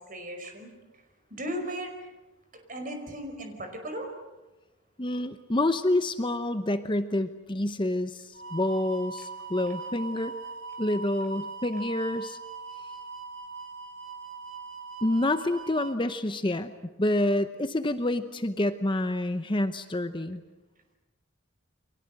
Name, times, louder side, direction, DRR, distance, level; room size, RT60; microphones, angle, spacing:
voice 1, 0.1-0.7 1.3-1.9 2.7-4.1, equal, 40° right, 5 dB, 5.2 m, -36 dB
voice 2, 5.0-10.3 10.8-12.4 15.0-16.7 17.0-20.4, left 1 dB, 25° left, 9 dB, 0.9 m, -28 dB
sound 1, 8.3-16.0, right 4 dB, 65° right, 2.5 m, -40 dB
30.0 x 24.0 x 7.8 m, 1.1 s
head